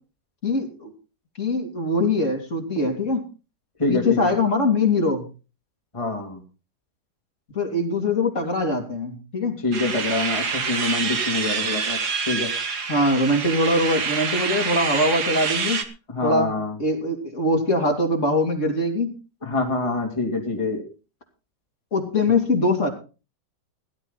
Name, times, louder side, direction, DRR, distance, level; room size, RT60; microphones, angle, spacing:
voice 1, 0.4-0.9 1.4-3.2 3.9-5.3 7.5-9.6 12.9-15.8 16.2-16.5 16.8-19.1 21.9-22.9, left 2 dB, 45° left, 2 dB, 3.4 m, -22 dB
voice 2, 3.8-4.3 5.9-6.4 9.6-12.0 12.3-12.5 16.1-16.7 19.4-20.8, left 3 dB, 15° left, 2 dB, 2.6 m, -25 dB
sound 1, 9.7-15.8, right 5 dB, 70° right, 2.1 m, -26 dB
17.0 x 12.0 x 4.1 m, 0.34 s
omnidirectional pair, 1.8 m